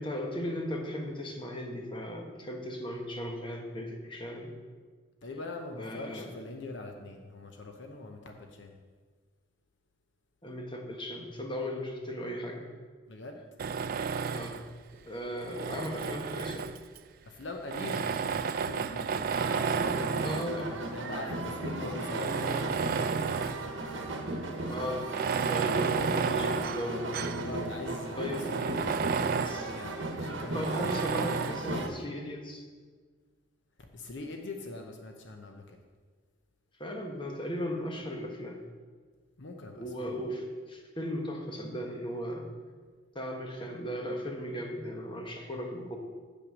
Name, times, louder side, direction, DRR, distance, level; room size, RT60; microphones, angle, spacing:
voice 1, 0.0-4.5 5.8-6.3 10.4-12.7 14.3-14.6 15.1-16.7 20.2-20.8 24.3-25.1 25.5-27.2 28.1-28.6 29.4-29.7 30.5-32.6 36.8-38.6 39.8-42.5 43.1-46.0, equal, 25° left, 2 dB, 1.1 m, -37 dB
voice 2, 5.2-8.8 13.1-13.4 17.3-23.3 25.5-25.8 27.4-28.2 28.5-31.0 33.9-35.8 39.4-40.1, left 2 dB, 65° left, 3 dB, 0.8 m, -42 dB
Tools, 13.6-14.7 15.4-17.0 17.7-20.6 21.3-21.4 21.9-23.7 24.1-24.2 25.0-27.5 27.9-28.0 28.3-29.7 30.6-31.6, right 6 dB, 50° right, 0.3 m, -32 dB
sound 1, 19.3-31.9, right 2 dB, 75° right, 1.0 m, -36 dB
8.2 x 5.9 x 6.2 m, 1.5 s
head